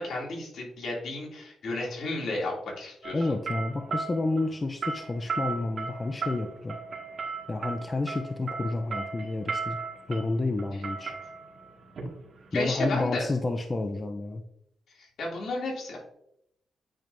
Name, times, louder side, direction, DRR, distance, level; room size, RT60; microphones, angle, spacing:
voice 1, 0.0-3.2 12.5-13.2 14.9-16.0, left 2 dB, 70° left, -2 dB, 2.7 m, -32 dB
sound 1, 3.0-12.9, right 4 dB, 55° right, 2.1 m, -36 dB
voice 2, 3.1-6.8 7.5-9.8 10.1-11.1 12.5-14.4, left 2 dB, 30° left, 6 dB, 0.6 m, -30 dB
9.0 x 5.2 x 2.7 m, 0.76 s
cardioid pair, 90°, 0 cm